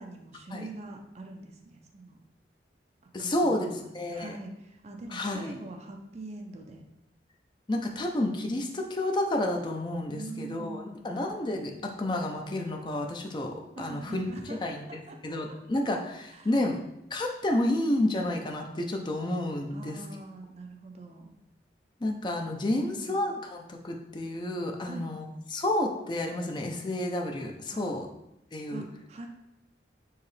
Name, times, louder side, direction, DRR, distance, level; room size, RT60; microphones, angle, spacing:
voice 1, 0.0-2.2 3.2-6.8 10.1-11.2 13.8-15.2 15.5-15.6 16.3-16.5 19.7-21.3 22.7-23.3 24.8-25.1 27.7-28.0 28.7-29.3, right 2 dB, 35° right, 3 dB, 0.5 m, -44 dB
voice 2, 3.1-4.3 5.1-5.5 7.7-14.2 14.6-16.8 17.1-20.0 22.0-28.1 28.5-28.8, left 1 dB, 25° left, 2 dB, 0.4 m, -30 dB
4.7 x 3.0 x 3.2 m, 0.84 s
head